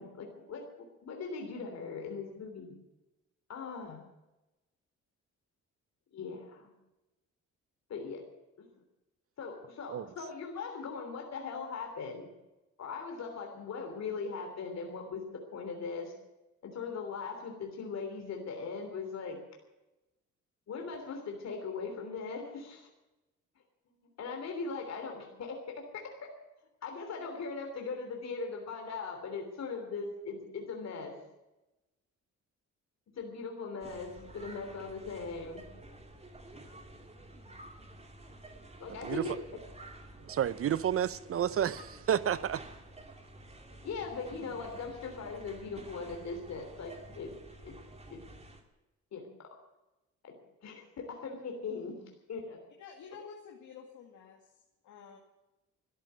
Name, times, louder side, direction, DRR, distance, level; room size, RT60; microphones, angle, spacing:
voice 1, 0.0-2.7 3.5-4.0 6.1-6.7 7.9-8.2 8.6-8.7 9.4-12.3 12.8-16.1 16.7-19.4 20.7-22.9 24.2-26.4 26.8-31.2 33.1-35.6 38.8-39.4 43.8-47.8 48.1-48.2 49.1-49.3 50.2-52.0 52.3-52.6, left 4 dB, 60° left, 3.2 m, -40 dB
sound 1, 33.8-48.6, right 1 dB, 20° right, 2.4 m, -50 dB
voice 2, 38.9-39.2 40.2-42.6, right 10 dB, 50° right, 0.7 m, -31 dB
voice 3, 52.8-54.4 54.8-55.2, left 6 dB, 75° left, 2.1 m, -49 dB
13.5 x 10.5 x 9.4 m
cardioid pair, 90°, 30 cm